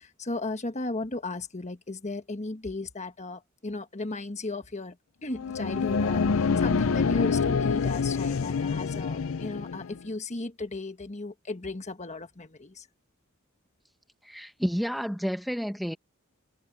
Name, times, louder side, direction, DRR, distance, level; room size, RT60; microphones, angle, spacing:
voice 1, 0.0-5.0 5.2-12.9, left 2 dB, 35° left, 1.4 m, -36 dB
sound 1, 5.3-10.0, left 5 dB, 80° left, 0.5 m, -26 dB
voice 2, 14.2-16.0, equal, ahead, 1.2 m, -30 dB
head